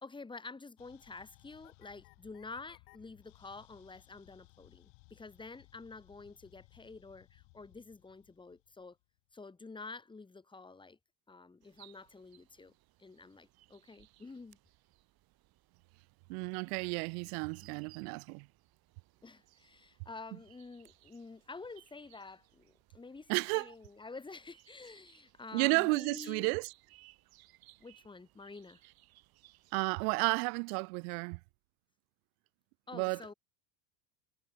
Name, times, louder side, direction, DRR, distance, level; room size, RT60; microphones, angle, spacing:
voice 1, 0.0-9.0 9.3-11.0 11.3-12.7 13.0-14.6 19.2-26.5 27.8-28.8 32.9-33.3, left 3 dB, 10° left, 2.3 m, -49 dB
sound 1, 0.8-9.3, left 39 dB, 70° left, 4.4 m, -62 dB
sound 2, 11.6-30.4, right 17 dB, 50° right, 6.7 m, -65 dB
voice 2, 16.3-18.4 23.3-23.7 25.5-26.7 29.7-31.4 32.9-33.2, right 36 dB, 65° right, 0.5 m, -32 dB
supercardioid pair, 140°, 48 cm